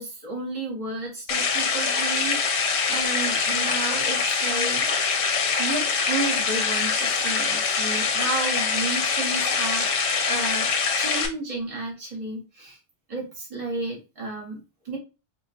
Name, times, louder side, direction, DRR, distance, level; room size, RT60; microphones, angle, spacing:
voice 1, 0.0-4.9 5.6-12.8 13.1-14.6 14.8-15.0, right 2 dB, 30° right, -4 dB, 1.5 m, -32 dB
sound 1, 1.3-11.3, left 5 dB, 70° left, 0.9 m, -24 dB
4.5 x 2.5 x 2.5 m, 0.30 s
omnidirectional pair, 1.2 m